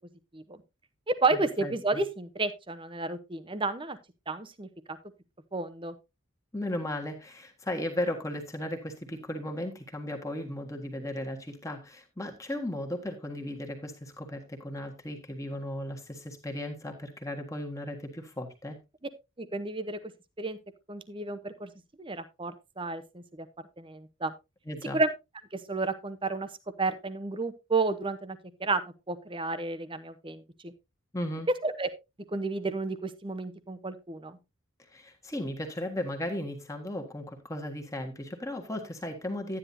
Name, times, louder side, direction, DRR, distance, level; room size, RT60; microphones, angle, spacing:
voice 1, 1.1-4.0 4.3-5.0 5.5-5.9 19.4-20.0 20.4-20.6 20.9-21.7 22.0-23.5 23.8-24.3 24.9-25.1 25.5-26.5 26.8-28.8 29.1-30.7 31.6-31.9 32.3-34.4, right 3 dB, 25° right, 12 dB, 0.8 m, -31 dB
voice 2, 1.6-2.0 6.5-18.8 24.7-25.0 31.1-31.5 34.9-39.6, left 1 dB, 15° left, 3 dB, 1.5 m, -36 dB
11.5 x 10.0 x 2.7 m, 0.24 s
head